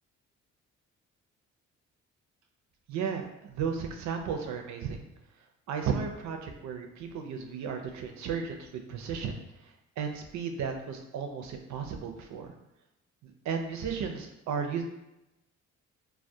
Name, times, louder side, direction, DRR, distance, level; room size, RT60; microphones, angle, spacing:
voice 1, 2.9-5.1 5.7-9.7 10.0-12.5 13.2-14.8, right 6 dB, 70° right, 4 dB, 0.5 m, -34 dB
2.2 x 2.1 x 2.6 m, 0.91 s
cardioid pair, 90°, 30 cm